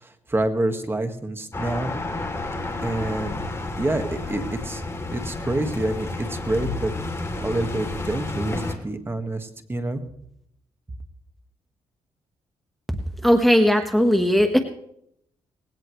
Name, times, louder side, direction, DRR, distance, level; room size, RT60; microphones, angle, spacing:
voice 1, 0.0-1.9 2.8-3.4 3.8-4.8 5.1-6.9 7.4-10.0, right 2 dB, 20° right, 7 dB, 1.7 m, -27 dB
sound 1, 1.5-8.8, left 2 dB, 25° left, 3.0 m, -31 dB
voice 2, 13.2-14.6, equal, ahead, 5 dB, 1.3 m, -18 dB
19.5 x 16.5 x 3.2 m, 0.73 s
cardioid pair, 85°, 11 cm